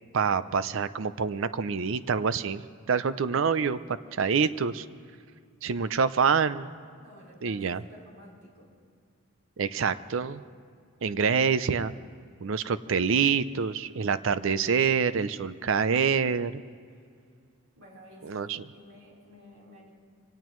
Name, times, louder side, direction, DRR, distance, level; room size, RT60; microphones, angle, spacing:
voice 1, 0.1-2.6 2.9-4.9 5.6-6.7 7.4-7.8 9.6-10.4 11.0-11.9 12.4-16.6 18.2-18.6, right 6 dB, 60° right, 14 dB, 0.5 m, -26 dB
voice 2, 7.0-8.7 17.8-19.9, equal, 90° right, -3 dB, 4.2 m, -52 dB
24.5 x 18.0 x 3.1 m, 2.2 s
head